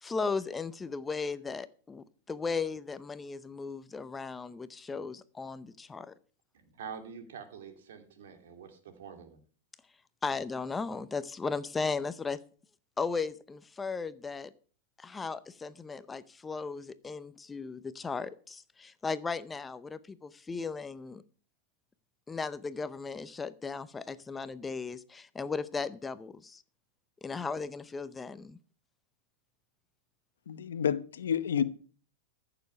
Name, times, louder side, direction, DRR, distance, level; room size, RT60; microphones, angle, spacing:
voice 1, 0.0-6.1 10.2-12.4 13.0-14.5 15.0-21.2 22.3-26.6 27.2-28.6, left 4 dB, 15° left, 15 dB, 0.7 m, -36 dB
voice 2, 6.5-9.4, right 6 dB, 80° right, 7 dB, 2.5 m, -46 dB
voice 3, 30.5-31.6, left 8 dB, 90° left, 14 dB, 0.9 m, -29 dB
14.5 x 6.9 x 5.6 m, 0.42 s
hypercardioid pair, 125°, 0 cm